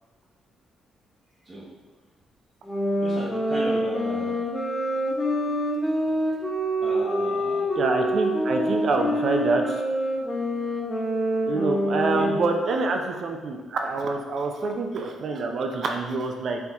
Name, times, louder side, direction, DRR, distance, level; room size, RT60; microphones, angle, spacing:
sound 1, 2.6-12.6, equal, 15° left, 1.0 m, -26 dB
voice 1, 3.0-4.4 6.8-7.7 8.5-8.8 12.1-12.3, right 1 dB, 25° right, -8 dB, 0.9 m, -36 dB
voice 2, 7.8-9.8 11.5-16.6, right 3 dB, 55° right, 3 dB, 0.5 m, -26 dB
4.4 x 2.8 x 3.5 m, 1.4 s
cardioid pair, 90°, 0 cm